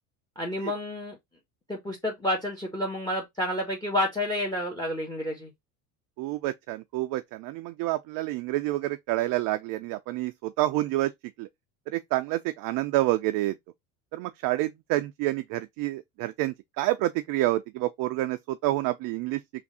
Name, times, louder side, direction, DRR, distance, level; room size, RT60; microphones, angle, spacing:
voice 1, 0.4-1.2 1.7-5.5, left 1 dB, 10° left, 1.2 m, -30 dB
voice 2, 6.2-11.1 11.4-11.5 11.9-13.6 14.1-19.4, right 16 dB, 50° right, 0.5 m, -28 dB
3.5 x 2.6 x 3.9 m
hypercardioid pair, 80°, 44 cm